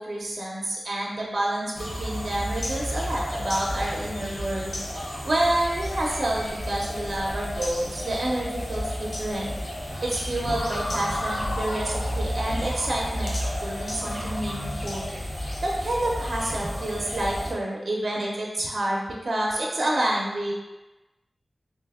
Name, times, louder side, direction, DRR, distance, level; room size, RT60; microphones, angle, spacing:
voice 1, 0.0-4.8 5.2-9.5 10.0-15.1 15.6-20.5, right 1 dB, 65° right, -2 dB, 0.6 m, -28 dB
sound 1, 1.7-17.5, equal, 55° left, 0.8 m, -32 dB
sound 2, 10.4-13.6, left 1 dB, 80° left, 0.4 m, -33 dB
3.4 x 2.6 x 3.5 m, 1.1 s
wide cardioid pair, 75°, 0 cm